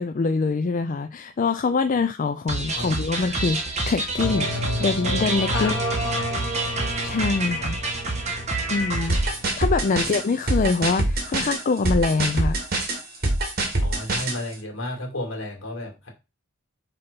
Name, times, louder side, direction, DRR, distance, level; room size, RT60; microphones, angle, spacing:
voice 1, 0.0-5.7 7.0-7.8 8.7-9.2 9.6-12.6, left 4 dB, 40° left, 0.4 m, -24 dB
sound 1, 2.5-9.3, right 2 dB, 35° right, 1.5 m, -28 dB
sound 2, 4.2-10.1, left 1 dB, 5° right, 4.4 m, -31 dB
sound 3, 9.1-14.4, right 2 dB, 50° right, 2.0 m, -24 dB
voice 2, 13.8-16.1, left 1 dB, 65° left, 2.7 m, -33 dB
5.7 x 4.1 x 5.2 m
head